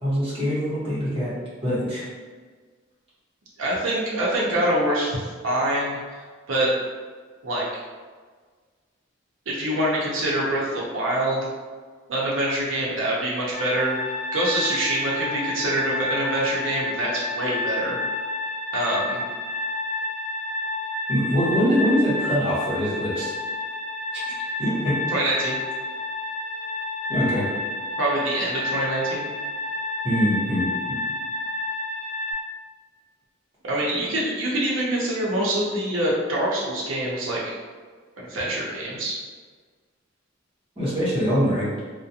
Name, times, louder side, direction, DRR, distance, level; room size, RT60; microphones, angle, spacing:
voice 1, 0.0-1.3 1.6-2.0 21.1-23.3 24.1-24.2 24.6-24.9 27.1-27.4 30.0-30.6 40.8-41.7, equal, 30° right, -10 dB, 1.0 m, -23 dB
voice 2, 3.6-6.2 6.5-6.7 7.4-7.8 9.5-11.5 12.1-18.0 18.7-19.2 25.1-25.6 28.0-29.3 33.6-37.6 38.2-39.2, right 1 dB, 80° right, -5 dB, 0.6 m, -25 dB
sound 1, 13.5-32.3, left 2 dB, 55° right, 0.9 m, -30 dB
2.4 x 2.1 x 2.7 m, 1.5 s
head